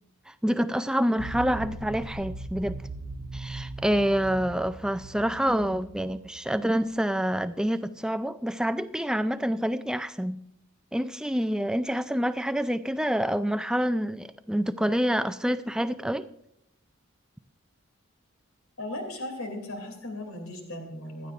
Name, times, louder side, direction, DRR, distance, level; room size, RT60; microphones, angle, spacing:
voice 1, 0.3-2.8 3.3-10.4 10.9-16.3, equal, 5° right, 12 dB, 0.3 m, -27 dB
sound 1, 1.2-7.0, right 3 dB, 55° right, 0.6 m, -39 dB
voice 2, 18.8-21.3, left 1 dB, 80° left, 4 dB, 2.8 m, -37 dB
16.0 x 12.0 x 2.5 m, 0.75 s
head